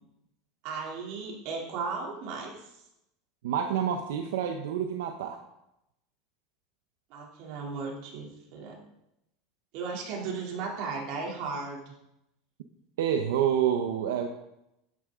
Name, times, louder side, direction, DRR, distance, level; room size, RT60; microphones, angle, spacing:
voice 1, 0.6-2.8 7.1-8.8 9.7-11.9, right 4 dB, 60° right, -1 dB, 3.2 m, -36 dB
voice 2, 3.4-5.4 13.0-14.3, right 9 dB, 90° right, 5 dB, 1.0 m, -28 dB
12.5 x 9.6 x 3.8 m, 0.86 s
supercardioid pair, 135°, 0 cm